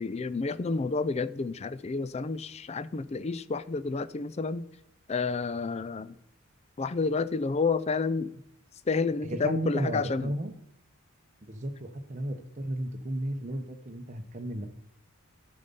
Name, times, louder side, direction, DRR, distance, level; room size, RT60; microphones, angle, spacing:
voice 1, 0.0-4.7 5.1-6.1 6.8-8.3 8.9-10.3, left 4 dB, 30° left, 0.3 m, -30 dB
voice 2, 9.2-10.5 11.5-14.7, right 1 dB, 35° right, 0.8 m, -33 dB
12.5 x 5.4 x 5.4 m
head